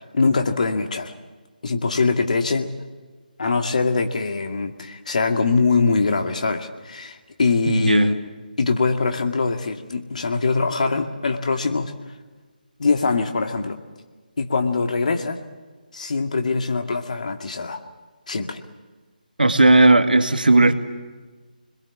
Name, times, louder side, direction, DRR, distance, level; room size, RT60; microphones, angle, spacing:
voice 1, 0.1-1.1 1.6-2.7 3.4-8.3 8.6-11.9 12.8-13.8 14.4-15.4 15.9-17.8 18.3-18.6, left 4 dB, 50° left, 6 dB, 2.2 m, -22 dB
voice 2, 7.7-8.1 19.4-20.7, right 2 dB, 70° right, 8 dB, 2.1 m, -15 dB
26.5 x 21.5 x 7.3 m, 1.4 s
figure-of-eight pair, 150°, 5 cm